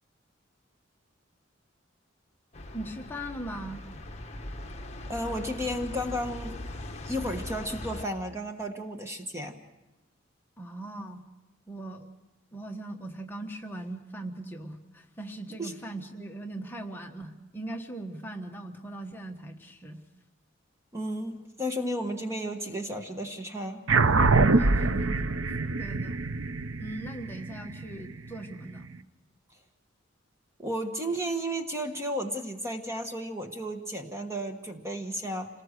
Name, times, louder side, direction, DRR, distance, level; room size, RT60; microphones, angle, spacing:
sound 1, 2.5-8.1, left 1 dB, 35° left, 1.4 m, -40 dB
voice 1, 2.7-3.9 10.6-11.2 11.7-12.1 12.5-20.0 24.5-25.3 25.8-26.2 26.8-28.9, right 1 dB, 10° left, 2 dB, 1.3 m, -39 dB
voice 2, 5.1-6.6 7.0-9.6 15.6-15.7 20.9-23.8 30.6-35.5, equal, 15° right, 5 dB, 1.3 m, -33 dB
sound 2, 23.9-28.6, right 3 dB, 85° right, 0.8 m, -24 dB
27.0 x 19.5 x 6.6 m, 1.0 s
head